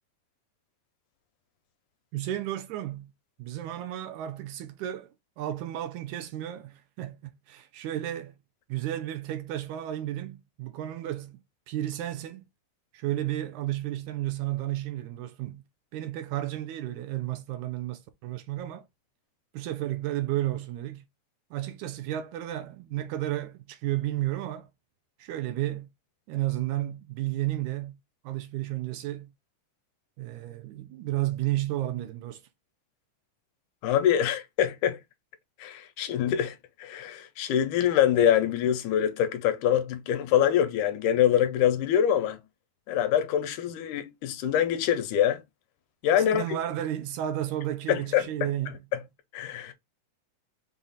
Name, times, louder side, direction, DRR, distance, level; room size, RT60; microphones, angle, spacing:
voice 1, 2.1-3.1 3.4-8.4 8.7-11.4 11.7-12.4 12.9-15.6 15.9-18.9 19.5-21.1 21.5-24.7 25.2-25.9 26.3-28.0 28.2-29.3 30.2-32.4 46.2-48.8, right 13 dB, 80° right, 1.9 m, -32 dB
voice 2, 33.8-35.0 35.6-42.4 42.9-45.4 46.0-46.4 47.9-48.5 49.3-49.7, left 10 dB, 80° left, 2.1 m, -25 dB
5.6 x 2.4 x 3.9 m
omnidirectional pair, 3.7 m